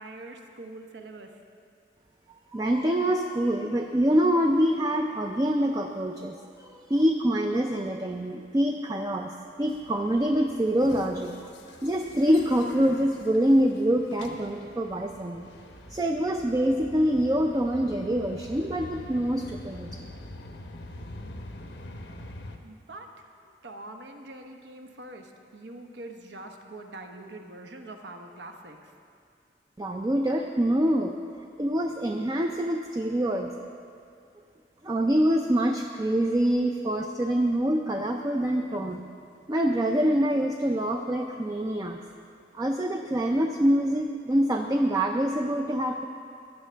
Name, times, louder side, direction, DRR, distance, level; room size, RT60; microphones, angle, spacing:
voice 1, 0.0-1.3 22.6-23.1 23.4-28.9, right 2 dB, 70° right, 4 dB, 0.9 m, -44 dB
voice 2, 2.5-6.4 6.6-9.3 9.6-11.3 11.8-15.5 15.9-20.0 29.8-31.1 31.6-33.5 34.8-39.0 39.5-42.0 42.5-46.1, equal, 20° right, 3 dB, 0.4 m, -25 dB
sound 1, 9.7-22.6, left 1 dB, 80° left, 0.9 m, -45 dB
15.5 x 10.5 x 3.4 m, 2.3 s
head